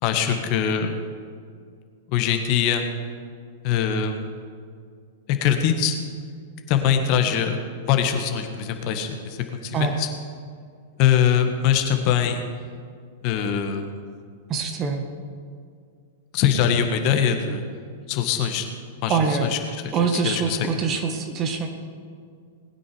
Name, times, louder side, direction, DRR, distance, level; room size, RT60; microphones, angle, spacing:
voice 1, 0.0-0.9 2.1-2.8 3.6-4.2 5.3-6.0 6.7-9.4 9.6-10.1 11.0-12.4 13.2-13.9 16.3-17.6 18.1-18.6 19.0-19.8 20.1-20.7, left 8 dB, 45° left, 6 dB, 1.6 m, -22 dB
voice 2, 14.5-15.0 19.1-19.5 19.9-21.7, right 5 dB, 35° right, 5 dB, 1.8 m, -24 dB
20.0 x 9.6 x 5.1 m, 2.2 s
figure-of-eight pair, 105°, 0 cm